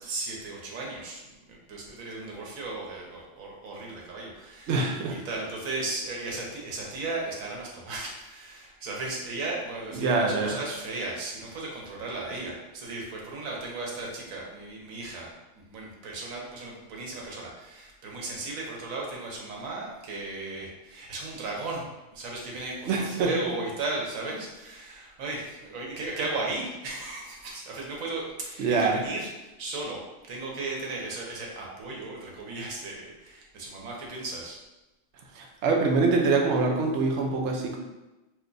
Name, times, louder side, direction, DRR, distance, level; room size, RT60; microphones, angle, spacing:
voice 1, 0.0-15.3 15.6-21.9 22.1-30.0 30.3-34.6, right 2 dB, 90° right, -2 dB, 1.2 m, -36 dB
voice 2, 4.7-5.1 9.9-10.6 22.9-23.3 28.6-29.0 35.3-37.8, right 3 dB, 65° right, 1 dB, 0.8 m, -24 dB
2.7 x 2.3 x 3.8 m, 1.0 s
omnidirectional pair, 1.4 m